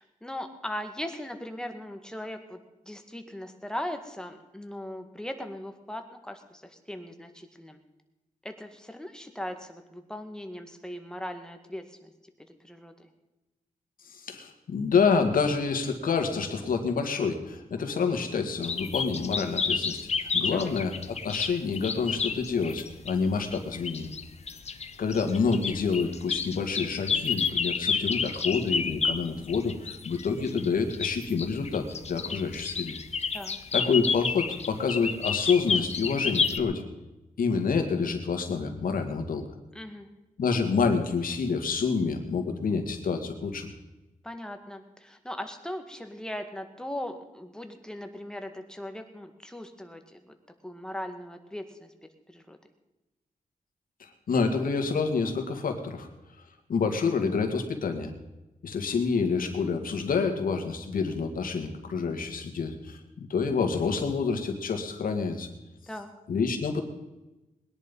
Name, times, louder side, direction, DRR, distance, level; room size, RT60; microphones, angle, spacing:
voice 1, 0.0-7.8 8.4-12.1 12.6-13.1 20.5-20.7 33.3-33.6 39.7-40.1 44.2-50.4 50.6-51.9 52.3-52.6 65.9-66.1, left 1 dB, 5° left, 6 dB, 1.8 m, -39 dB
voice 2, 14.0-24.1 25.0-32.9 33.7-36.8 37.4-39.4 40.4-43.7 54.0-56.1 56.7-58.1 58.6-65.5 66.3-66.8, left 5 dB, 80° left, 5 dB, 2.2 m, -28 dB
sound 1, 18.6-23.1 23.5-36.6, left 5 dB, 50° left, 1.0 m, -30 dB
20.5 x 10.5 x 5.5 m, 1.0 s
wide cardioid pair, 105°, 14 cm